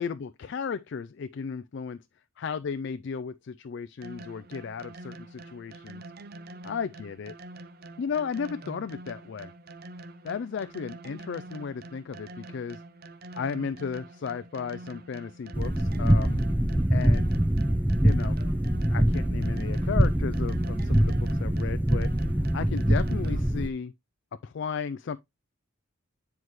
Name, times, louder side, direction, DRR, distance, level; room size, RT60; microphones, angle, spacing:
voice 1, 0.0-2.0 2.4-6.0 6.7-7.3 8.0-9.5 10.2-12.8 13.3-16.4 16.9-17.3 18.0-18.4 18.9-22.1 22.5-23.9 24.4-25.2, left 6 dB, 55° left, 0.4 m, -34 dB
sound 1, 4.0-23.7, right 2 dB, 45° right, 0.7 m, -45 dB
sound 2, 15.5-23.7, right 1 dB, 5° right, 0.5 m, -24 dB
9.5 x 4.7 x 3.1 m
head